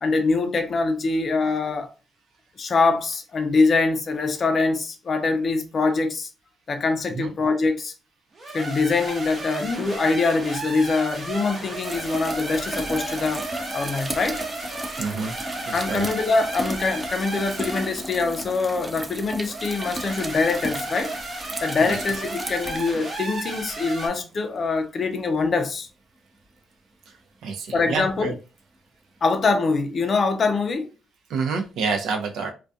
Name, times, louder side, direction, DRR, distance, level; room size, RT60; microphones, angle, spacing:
voice 1, 0.0-1.9 2.6-6.3 6.7-7.9 8.5-13.4 13.7-14.4 15.7-21.1 21.6-25.9 27.7-28.3 29.2-30.9, left 3 dB, 45° left, 0.5 m, -23 dB
sound 1, 8.3-18.0 19.4-24.1, right 2 dB, 40° right, 0.8 m, -34 dB
sound 2, 11.8-23.6 25.2-25.3 30.1-30.2, right 1 dB, 20° right, 0.4 m, -35 dB
voice 2, 15.0-15.3 15.7-16.1 21.8-22.0 27.1-27.2 27.4-28.3 31.3-32.5, right 5 dB, 80° right, 0.6 m, -28 dB
2.3 x 2.2 x 2.6 m
cardioid pair, 90°, 0 cm